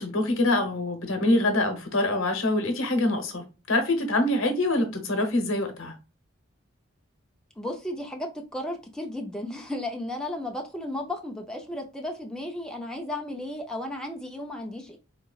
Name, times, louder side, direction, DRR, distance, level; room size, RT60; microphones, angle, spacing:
voice 1, 0.0-5.9, left 2 dB, 90° left, 0.9 m, -25 dB
voice 2, 7.6-15.0, left 1 dB, 5° left, 0.4 m, -34 dB
3.7 x 3.0 x 2.3 m
head